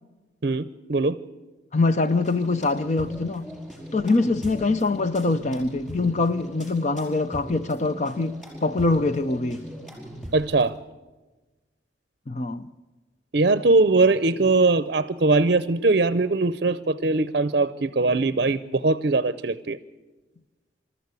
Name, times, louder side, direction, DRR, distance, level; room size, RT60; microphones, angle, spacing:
voice 1, 0.4-1.2 10.3-10.8 13.3-19.8, right 3 dB, 55° right, 0.6 m, -21 dB
voice 2, 1.7-3.5 3.9-9.7 12.3-12.7, left 3 dB, 40° left, 0.6 m, -24 dB
sound 1, 2.0-10.6, equal, 5° left, 4.9 m, -40 dB
26.0 x 13.5 x 8.3 m
head